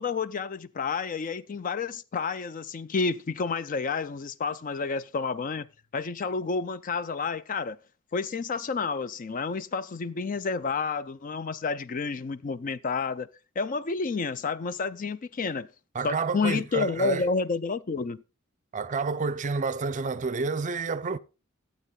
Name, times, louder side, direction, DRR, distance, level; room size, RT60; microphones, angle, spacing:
voice 1, 0.0-5.7 5.9-7.8 8.1-13.3 13.6-15.7 16.0-18.2, left 4 dB, 40° left, 0.4 m, -30 dB
voice 2, 15.9-17.2 18.7-21.2, right 4 dB, 35° right, 0.5 m, -29 dB
12.0 x 8.2 x 3.7 m
head